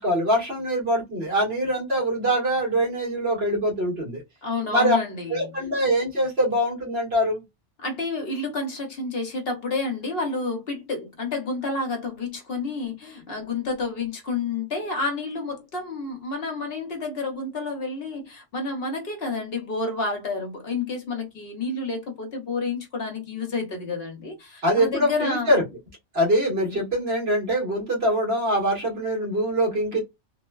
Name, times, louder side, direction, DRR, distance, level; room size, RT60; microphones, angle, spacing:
voice 1, 0.0-4.2 4.7-5.0 5.3-7.4 24.6-25.6 26.1-30.0, equal, 60° right, 1.6 m, -23 dB
voice 2, 4.4-5.6 7.8-25.5, left 3 dB, 55° left, 0.9 m, -30 dB
3.1 x 2.1 x 2.2 m
omnidirectional pair, 1.2 m